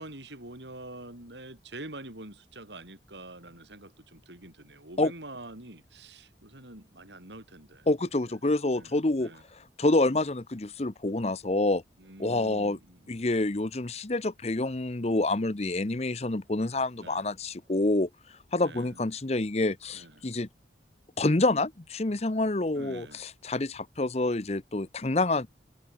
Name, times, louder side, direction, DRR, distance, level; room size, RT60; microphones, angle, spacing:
voice 1, 0.0-8.1 8.8-9.4 12.0-13.1 17.0-17.3 18.6-19.0 19.9-20.2 22.7-23.2, right 2 dB, 75° right, 7.6 m, -46 dB
voice 2, 7.9-11.8 12.2-12.8 13.1-18.1 18.5-20.5 21.2-25.5, left 2 dB, 35° left, 0.8 m, -27 dB
head